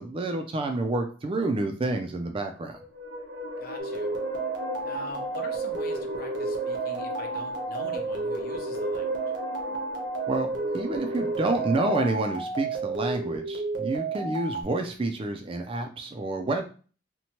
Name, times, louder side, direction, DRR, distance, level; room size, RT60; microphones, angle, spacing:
voice 1, 0.0-2.8 10.3-16.6, right 2 dB, 30° right, 5 dB, 0.3 m, -29 dB
sound 1, 2.6-12.0, left 3 dB, 85° right, 0.9 m, -37 dB
voice 2, 3.6-4.1 4.8-9.3, left 3 dB, 50° left, 3 dB, 0.6 m, -45 dB
sound 2, 3.8-14.6, right 4 dB, 65° right, 0.7 m, -32 dB
2.8 x 2.1 x 2.9 m, 0.38 s
head